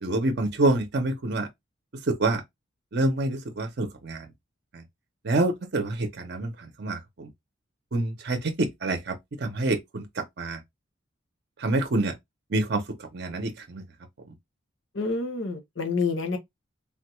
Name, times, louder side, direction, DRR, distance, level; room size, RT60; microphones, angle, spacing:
voice 1, 0.0-1.5 2.0-2.4 2.9-4.3 4.7-4.8 5.2-7.3 7.9-10.6 11.6-12.2 12.5-13.8, right 2 dB, 50° right, 0.6 m, -27 dB
voice 2, 14.9-16.4, left 4 dB, 65° left, 0.9 m, -28 dB
3.6 x 2.2 x 2.9 m
head